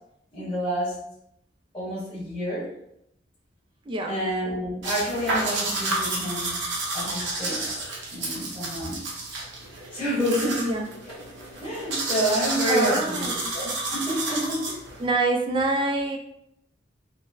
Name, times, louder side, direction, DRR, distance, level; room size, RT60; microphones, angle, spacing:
voice 1, 0.3-1.0 1.7-2.7 4.1-6.5 6.9-7.7 8.1-9.0 9.9-10.6 11.6-13.3 13.5-14.8, equal, 30° left, -11 dB, 1.3 m, -28 dB
voice 2, 3.9-4.2 10.6-10.9 12.7-13.5 15.0-16.2, right 2 dB, 25° right, 3 dB, 0.3 m, -25 dB
sound 1, 4.8-15.1, right 2 dB, 70° right, 0.8 m, -31 dB
3.9 x 2.1 x 2.5 m, 0.77 s
head